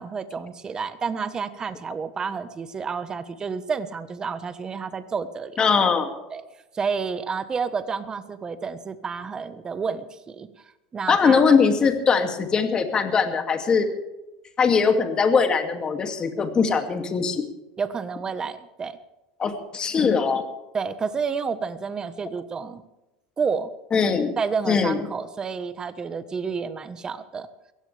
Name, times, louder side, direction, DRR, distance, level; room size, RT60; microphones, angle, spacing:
voice 1, 0.0-5.6 6.3-6.4 6.7-10.5 10.9-11.4 17.8-19.0 20.7-22.8 23.4-23.7 24.4-27.5, right 5 dB, 25° right, 11 dB, 1.3 m, -30 dB
voice 2, 5.6-6.1 11.1-13.9 14.6-17.4 19.4-20.4 23.9-24.3 24.7-25.0, left 5 dB, 30° left, 5 dB, 2.5 m, -21 dB
22.5 x 16.5 x 3.5 m, 0.99 s
supercardioid pair, 125°, 3 cm